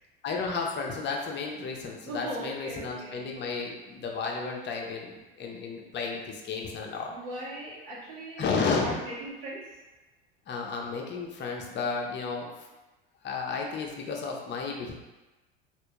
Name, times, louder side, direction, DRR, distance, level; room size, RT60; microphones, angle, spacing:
voice 1, 0.2-7.1 8.4-9.0 10.5-12.5 13.2-14.9, left 4 dB, 35° left, 0 dB, 0.7 m, -32 dB
voice 2, 2.0-3.2 5.5-5.6 7.1-9.6, right 1 dB, 75° right, -5 dB, 1.2 m, -39 dB
3.2 x 2.5 x 3.1 m, 1.1 s
hypercardioid pair, 80°, 30 cm